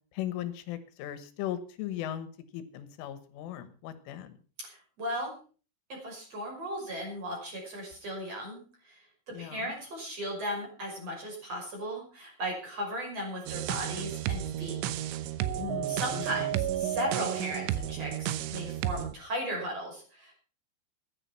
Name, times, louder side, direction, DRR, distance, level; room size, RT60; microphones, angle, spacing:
voice 1, 0.1-2.3 2.5-4.4 9.3-9.7 15.6-16.5, left 12 dB, 85° left, 12 dB, 3.8 m, -38 dB
voice 2, 4.6-5.3 5.9-9.0 9.3-14.8 15.9-20.3, equal, 30° right, 1 dB, 6.4 m, -36 dB
sound 1, 13.5-19.1, right 12 dB, 85° right, 3.3 m, -32 dB
15.0 x 11.0 x 5.8 m, 0.39 s
omnidirectional pair, 5.6 m